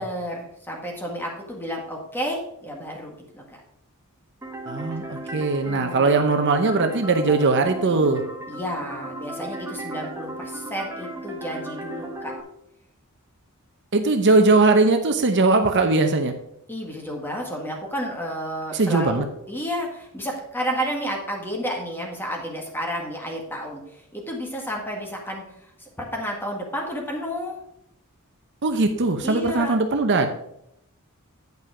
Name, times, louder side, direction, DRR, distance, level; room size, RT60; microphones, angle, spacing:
voice 1, 0.0-3.4 5.2-6.0 8.5-12.3 16.7-25.4 25.8-27.6 29.2-29.8, equal, 10° left, 0 dB, 1.8 m, -31 dB
sound 1, 4.4-12.4, right 1 dB, 10° right, 1.1 m, -36 dB
voice 2, 4.7-8.2 13.9-16.3 18.7-19.2 28.6-30.3, right 3 dB, 55° right, 6 dB, 0.8 m, -20 dB
9.3 x 5.5 x 4.9 m, 0.75 s
head